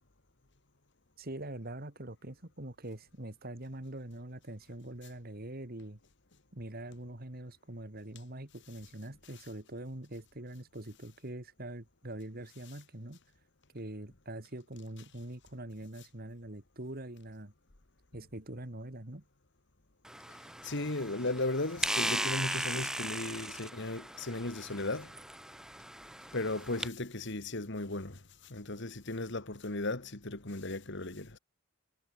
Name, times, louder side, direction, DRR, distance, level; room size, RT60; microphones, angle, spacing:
voice 1, 1.2-6.0 6.5-13.2 13.7-17.5 18.1-19.2, right 1 dB, 45° right, 2.4 m, -44 dB
sound 1, 20.0-26.9, right 1 dB, 5° right, 0.5 m, -38 dB
voice 2, 20.6-25.1 26.3-28.2 28.5-31.4, left 2 dB, 55° left, 2.2 m, -36 dB
head